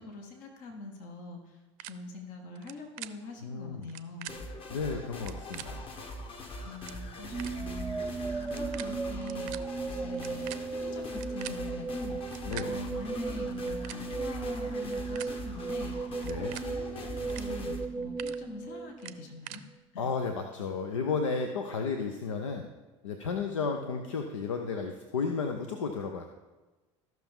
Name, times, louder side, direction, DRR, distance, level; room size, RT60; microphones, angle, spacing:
voice 1, 0.0-4.4 6.6-9.6 9.8-19.6 19.9-20.1, left 2 dB, 60° left, 3 dB, 1.6 m, -44 dB
sound 1, 1.8-1.9 2.5-2.7 3.0-3.1 3.8-4.3 5.1-5.6 6.4-6.5 6.7-7.0 7.4-7.5 8.4-8.8 9.1-9.6 10.1-11.6 12.2-12.6 13.5-14.0 14.8-15.3 16.2-16.6 17.2-17.4 17.8-18.3 19.0-19.6, right 17 dB, 60° right, 0.6 m, -43 dB
voice 2, 3.4-3.8 4.7-5.8 12.5-12.8 16.2-16.5 20.0-22.7 23.0-26.3, left 5 dB, 90° left, 5 dB, 0.7 m, -33 dB
sound 2, 4.3-17.9, left 1 dB, 35° left, 1.5 m, -42 dB
sound 3, 7.3-19.4, right 4 dB, 5° right, 0.3 m, -36 dB
14.5 x 6.0 x 3.6 m, 1.2 s
hypercardioid pair, 80°, 16 cm